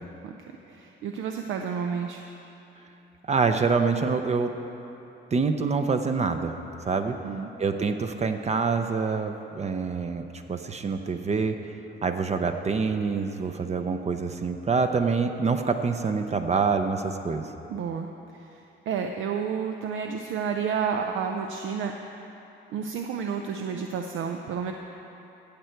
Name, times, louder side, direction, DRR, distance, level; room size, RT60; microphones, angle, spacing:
voice 1, 0.7-2.2 7.2-7.5 17.7-18.1 18.3-22.2 22.7-24.7, right 6 dB, 80° right, 4 dB, 0.6 m, -31 dB
voice 2, 3.3-4.5 5.3-6.6 6.8-7.2 7.6-11.6 12.0-17.5, right 4 dB, 35° right, 6 dB, 0.6 m, -26 dB
15.5 x 6.6 x 4.5 m, 3.0 s
cardioid pair, 90°, 20 cm